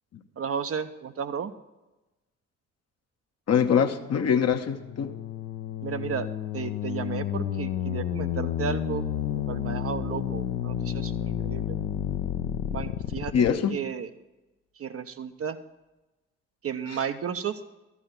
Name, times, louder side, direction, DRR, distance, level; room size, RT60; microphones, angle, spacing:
voice 1, 0.4-1.5 5.8-6.3 6.5-9.1 9.5-11.8 12.7-14.1 14.8-15.6 16.6-17.6, right 7 dB, 40° right, 9 dB, 0.8 m, -33 dB
voice 2, 3.5-5.1 13.3-13.7, left 7 dB, 45° left, 6 dB, 1.0 m, -23 dB
sound 1, 4.7-13.5, left 10 dB, 60° left, 0.8 m, -31 dB
13.0 x 7.0 x 5.9 m, 1.0 s
figure-of-eight pair, 40°, 37 cm